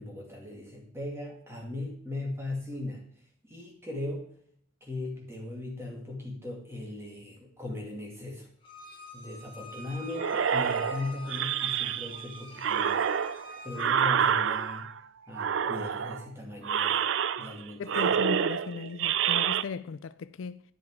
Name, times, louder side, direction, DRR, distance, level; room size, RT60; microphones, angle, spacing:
voice 1, 0.0-3.1 3.4-4.3 4.8-8.5 9.1-13.0 13.6-14.9 15.3-17.0 17.4-18.2, left 2 dB, 10° right, 2.2 m, -38 dB
Bowed string instrument, 8.6-13.9, left 2 dB, 25° left, 1.8 m, -45 dB
sound 1, 10.2-12.2 12.6-15.0 15.3-16.2 16.6-17.6 17.9-19.6, right 8 dB, 65° right, 0.4 m, -28 dB
voice 2, 17.8-20.6, left 5 dB, 70° left, 0.4 m, -37 dB
10.5 x 7.0 x 4.8 m
head